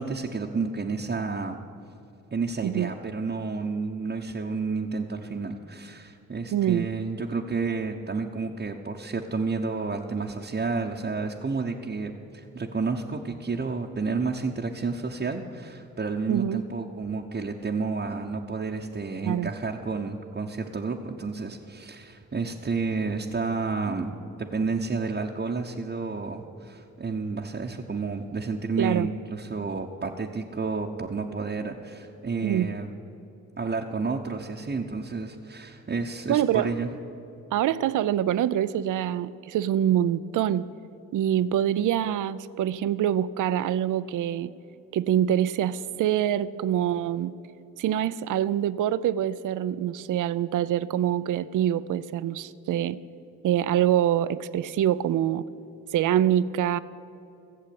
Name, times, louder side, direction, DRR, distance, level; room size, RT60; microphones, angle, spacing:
voice 1, 0.0-1.6 2.3-32.9 33.6-36.9, right 4 dB, 30° right, 0 dB, 0.9 m, -30 dB
voice 2, 6.5-6.9 16.3-16.6 19.2-19.5 28.8-29.1 32.4-32.7 36.3-36.7 37.5-40.7 41.1-44.5 44.9-47.3 47.8-53.0 53.4-55.5 55.9-56.8, right 11 dB, 60° right, 16 dB, 0.5 m, -25 dB
15.0 x 7.4 x 8.6 m, 2.9 s
supercardioid pair, 55°, 35 cm